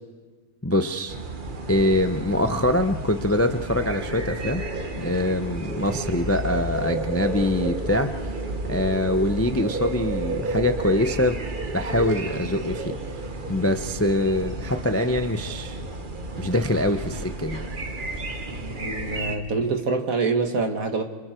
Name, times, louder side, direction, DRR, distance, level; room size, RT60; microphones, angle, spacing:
voice 1, 0.6-1.1 1.7-4.7 5.0-8.1 8.7-11.4 11.7-13.0 13.5-15.8 16.4-17.6, left 1 dB, 15° left, 7 dB, 0.6 m, -24 dB
sound 1, 1.1-19.4, right 2 dB, 35° right, 1.5 m, -32 dB
voice 2, 18.5-21.0, right 4 dB, 65° right, 5 dB, 2.2 m, -26 dB
27.5 x 27.0 x 4.5 m, 1.3 s
omnidirectional pair, 1.6 m